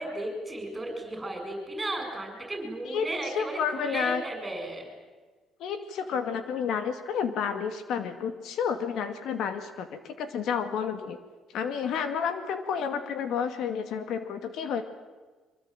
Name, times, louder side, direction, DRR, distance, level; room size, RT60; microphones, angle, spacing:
voice 1, 0.0-4.9, right 1 dB, 15° right, 4 dB, 7.6 m, -35 dB
voice 2, 3.4-4.2 5.6-11.2 11.5-14.8, left 7 dB, 70° left, 9 dB, 2.2 m, -30 dB
24.5 x 23.0 x 9.1 m, 1.3 s
cardioid pair, 140°, 0 cm